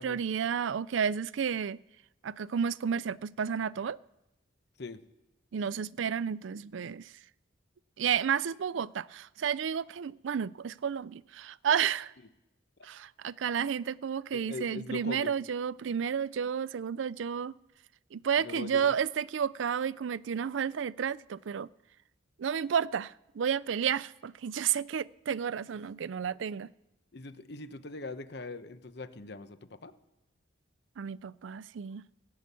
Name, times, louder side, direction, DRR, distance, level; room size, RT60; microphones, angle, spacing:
voice 1, 0.0-1.8 2.2-4.0 5.5-7.1 8.0-12.1 12.8-17.6 18.1-21.7 22.4-26.7 31.0-32.1, right 7 dB, 80° right, 0.4 m, -31 dB
voice 2, 14.3-15.3 18.4-18.9 27.1-29.9, left 3 dB, 60° left, 1.0 m, -42 dB
16.5 x 7.3 x 8.4 m
head